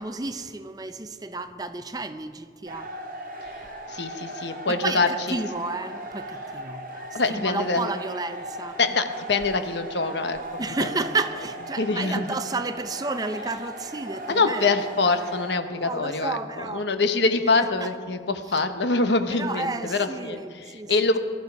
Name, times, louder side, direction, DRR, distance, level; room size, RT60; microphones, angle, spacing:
voice 1, 0.0-2.9 4.7-8.8 10.6-14.7 15.8-16.9 17.8-17.9 19.3-20.9, right 3 dB, 20° right, 10 dB, 0.6 m, -31 dB
sound 1, 2.7-15.6, right 1 dB, 50° right, 2.0 m, -38 dB
voice 2, 3.9-5.1 7.1-7.9 8.8-10.9 11.8-12.2 14.3-16.4 16.7-20.4 20.9-21.2, left 3 dB, 80° left, 8 dB, 1.1 m, -24 dB
19.0 x 13.0 x 4.7 m, 2.1 s
head